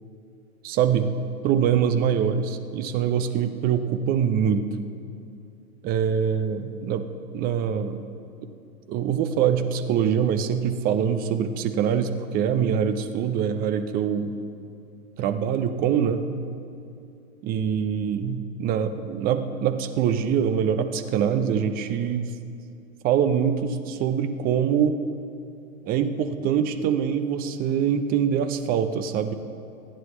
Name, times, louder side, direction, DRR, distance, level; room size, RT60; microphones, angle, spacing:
voice 1, 0.6-1.1 1.4-4.7 5.8-7.0 7.3-8.0 8.9-14.3 15.2-16.2 17.4-22.3 23.0-25.0 25.8-29.3, right 8 dB, 20° right, 9 dB, 0.6 m, -24 dB
26.5 x 9.9 x 3.2 m, 2.5 s
figure-of-eight pair, 110°, 43 cm